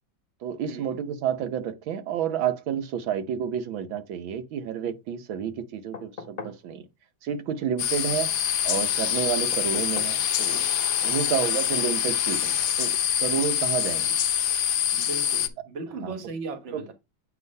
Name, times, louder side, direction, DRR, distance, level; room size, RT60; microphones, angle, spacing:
voice 1, 0.4-6.9 7.2-8.3 8.6-10.6 11.0-14.2 16.0-16.1 16.7-16.9, right 8 dB, 85° right, 1.7 m, -30 dB
sound 1, 5.9-6.7 9.5-10.2 11.8-11.9, left 4 dB, 40° left, 0.6 m, -40 dB
sound 2, 7.8-15.5, left 10 dB, 65° left, 0.9 m, -25 dB
voice 2, 14.9-16.9, right 3 dB, 40° right, 1.3 m, -37 dB
8.2 x 3.0 x 5.2 m
omnidirectional pair, 2.1 m